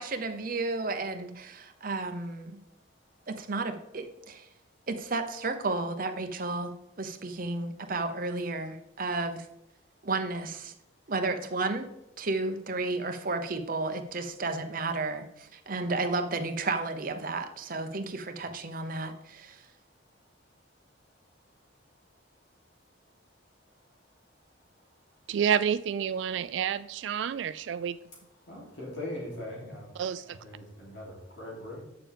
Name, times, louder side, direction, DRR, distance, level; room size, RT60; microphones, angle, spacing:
voice 1, 0.0-2.6 3.3-4.5 4.9-9.5 10.0-10.7 11.1-11.9 12.2-19.7, right 3 dB, 50° right, 6 dB, 0.9 m, -32 dB
voice 2, 25.3-28.0 29.9-30.4, right 8 dB, 75° right, 14 dB, 0.3 m, -29 dB
voice 3, 28.4-29.9 30.2-31.8, left 1 dB, 75° left, -4 dB, 3.1 m, -40 dB
8.6 x 6.9 x 3.5 m, 0.86 s
head